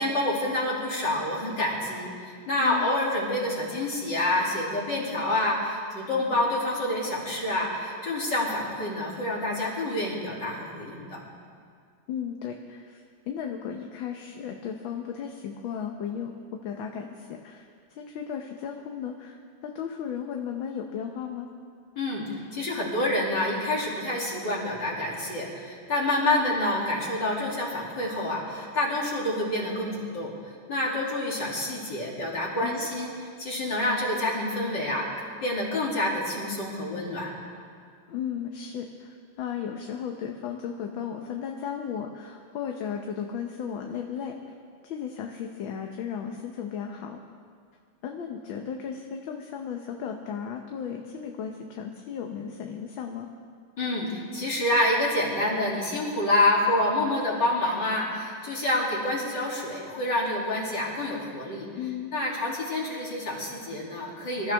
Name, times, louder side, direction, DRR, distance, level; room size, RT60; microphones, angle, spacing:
voice 1, 0.0-11.2 22.0-30.3 30.7-33.1 33.4-35.1 35.4-37.3 53.8-61.7 62.1-64.5, left 1 dB, 55° left, -4 dB, 3.5 m, -27 dB
voice 2, 12.1-21.5 26.2-26.5 32.6-32.9 38.1-44.3 44.8-47.2 48.0-53.3 61.8-62.1, left 8 dB, 75° left, 2 dB, 1.7 m, -35 dB
26.0 x 13.5 x 3.5 m, 2.2 s
omnidirectional pair, 2.3 m